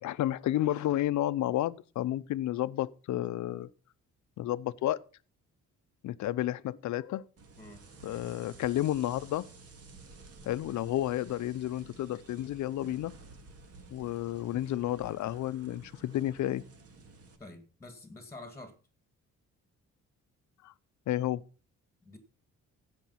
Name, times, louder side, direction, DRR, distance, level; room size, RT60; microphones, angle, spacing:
voice 1, 0.0-3.7 4.4-5.0 6.0-7.3 8.0-9.5 10.5-13.1 13.9-16.6 20.6-20.7 21.1-21.4, left 13 dB, 70° left, 0.7 m, -31 dB
sound 1, 7.4-17.4, right 3 dB, 50° right, 2.2 m, -53 dB
voice 2, 17.4-18.7 22.0-22.2, left 2 dB, 10° left, 2.1 m, -47 dB
15.5 x 5.3 x 5.7 m
cardioid pair, 90°, 30 cm